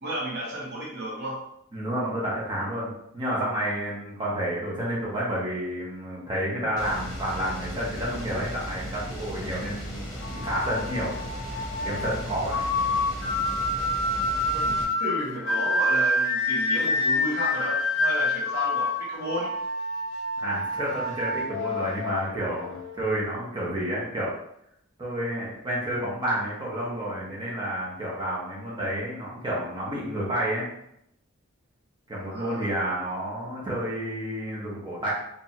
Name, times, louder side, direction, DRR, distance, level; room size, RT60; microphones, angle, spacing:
voice 1, 0.0-1.4 14.5-19.5 32.2-32.7, right 1 dB, 50° right, -5 dB, 0.9 m, -33 dB
voice 2, 1.7-10.0 10.3-11.2 11.8-12.7 20.4-24.3 25.0-30.7 32.1-35.1, right 1 dB, 20° right, -6 dB, 1.1 m, -30 dB
sound 1, 6.8-14.8, equal, 20° left, 1.1 m, -36 dB
sound 2, 10.2-23.0, left 2 dB, 55° left, 0.8 m, -28 dB
4.0 x 2.7 x 3.0 m, 0.75 s
head